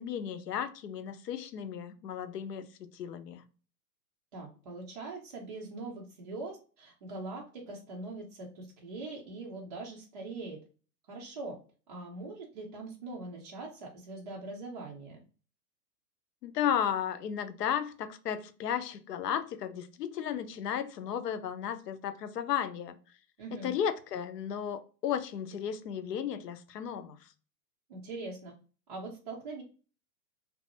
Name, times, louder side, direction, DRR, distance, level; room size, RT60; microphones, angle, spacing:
voice 1, 0.0-3.4 16.4-23.0 23.6-27.2, left 9 dB, 75° left, 0.6 m, -34 dB
voice 2, 4.3-10.6 11.1-11.6 11.9-15.2 23.4-23.7 27.9-28.5 28.9-29.6, right 3 dB, 30° right, 0.3 m, -42 dB
2.6 x 2.1 x 2.8 m
hypercardioid pair, 120°, 50 cm